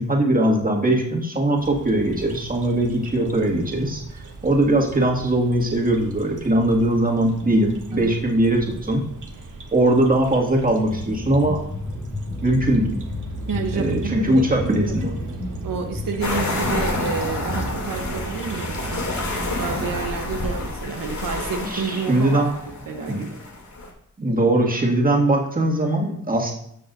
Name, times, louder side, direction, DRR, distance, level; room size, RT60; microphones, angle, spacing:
voice 1, 0.0-9.1 9.7-11.6 12.4-12.9 13.7-15.1 21.7-22.5 23.1-23.2 24.2-26.5, right 1 dB, 25° right, -1 dB, 2.1 m, -20 dB
sound 1, 1.6-20.1, right 3 dB, 65° right, 1.4 m, -37 dB
sound 2, 10.9-17.7, left 2 dB, 25° left, 2.1 m, -32 dB
voice 2, 13.5-14.5 14.8-14.9 15.6-19.0 19.6-23.4 24.3-24.4, right 5 dB, 85° right, 4 dB, 1.0 m, -30 dB
sound 3, 16.2-23.9, left 2 dB, 60° left, 2.7 m, -29 dB
13.0 x 6.7 x 2.6 m, 0.71 s
wide cardioid pair, 85°, 33 cm